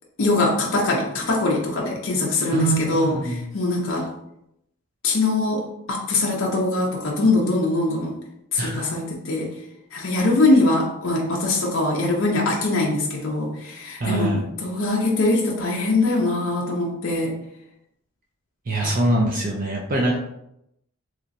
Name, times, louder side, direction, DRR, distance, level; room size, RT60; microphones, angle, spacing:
voice 1, 0.2-4.1 5.0-8.1 8.5-9.5 9.9-17.3 18.8-18.9, left 2 dB, 55° left, -2 dB, 0.6 m, -22 dB
voice 2, 2.5-3.4 8.5-8.9 14.0-14.5 18.7-20.2, right 2 dB, 40° right, -2 dB, 0.5 m, -23 dB
3.1 x 2.9 x 2.5 m, 0.80 s
head